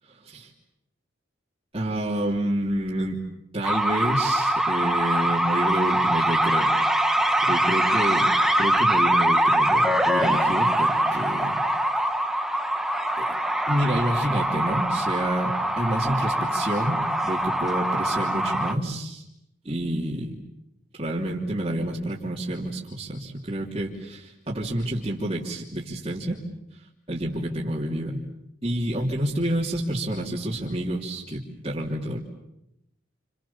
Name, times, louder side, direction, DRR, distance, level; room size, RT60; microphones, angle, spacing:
voice 1, 1.7-3.2 3.5-6.7 7.5-8.3 8.6-11.6 13.2-13.3 13.7-17.0 17.2-19.2 19.6-20.4 21.0-26.4 27.1-28.2 28.6-32.2, right 1 dB, 25° right, -7 dB, 3.2 m, -28 dB
sound 1, 3.6-18.7, right 1 dB, ahead, 1.1 m, -23 dB
29.5 x 27.5 x 7.3 m, 0.84 s
head